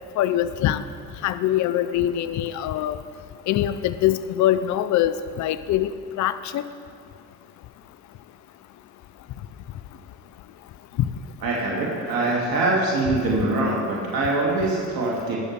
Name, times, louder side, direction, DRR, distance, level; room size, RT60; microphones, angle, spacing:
voice 1, 0.2-0.8 1.2-3.0 3.5-6.6, left 12 dB, 45° left, 12 dB, 0.5 m, -23 dB
voice 2, 11.4-15.4, right 2 dB, 55° right, -4 dB, 2.3 m, -23 dB
19.5 x 6.7 x 3.4 m, 2.3 s
hypercardioid pair, 60°, 41 cm